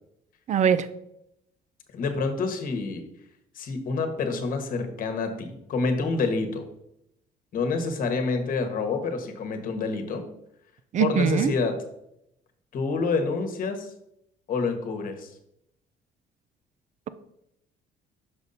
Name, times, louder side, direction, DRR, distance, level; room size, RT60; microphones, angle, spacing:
voice 1, 0.5-0.9 10.9-11.5, right 7 dB, 45° right, 14 dB, 0.5 m, -22 dB
voice 2, 1.9-3.0 3.5-6.7 7.5-10.2 11.0-11.8 12.7-13.9 14.5-15.3, left 4 dB, 55° left, 6 dB, 1.2 m, -27 dB
6.1 x 5.2 x 4.1 m, 0.80 s
cardioid pair, 110°, 17 cm